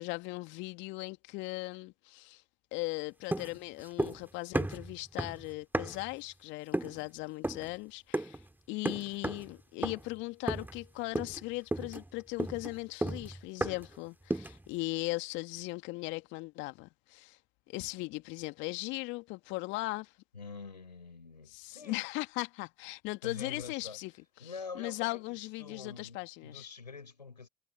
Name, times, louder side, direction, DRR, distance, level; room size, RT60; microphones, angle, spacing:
voice 1, 0.0-2.4 2.7-8.4 8.7-17.4 17.7-20.1 21.5-24.1 24.4-24.5 24.8-26.7, left 23 dB, 65° left, 2.2 m, -38 dB
sound 1, 3.3-4.3 4.5-6.1 6.7-7.0 7.4-7.7 8.1-8.4 8.9-9.5 9.8-10.1 10.5-10.9 11.2-11.4 11.7-14.0 14.3-14.7, right 1 dB, 10° right, 2.2 m, -34 dB
voice 2, 20.3-22.1 23.2-24.0 24.4-27.5, left 4 dB, 90° left, 5.5 m, -46 dB
figure-of-eight pair, 50°, 21 cm